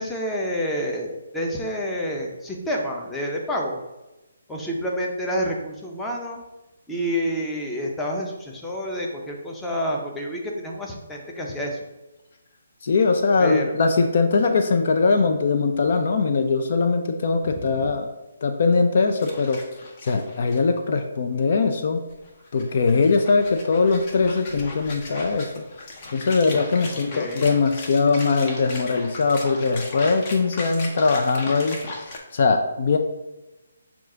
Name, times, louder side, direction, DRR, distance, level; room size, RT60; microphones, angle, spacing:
voice 1, 0.0-3.8 4.5-6.4 6.9-11.8 13.4-13.6 17.5-17.7 27.1-27.4, equal, 5° left, -1 dB, 0.6 m, -28 dB
voice 2, 12.8-18.1 18.4-19.6 20.0-22.0 22.5-25.6 26.1-31.8 32.3-33.0, left 4 dB, 55° left, 6 dB, 0.4 m, -21 dB
sound 1, 19.2-20.6 21.0-21.1 22.1-32.2, left 2 dB, 35° left, 0.8 m, -37 dB
6.1 x 2.4 x 3.7 m, 1.0 s
hypercardioid pair, 150°, 0 cm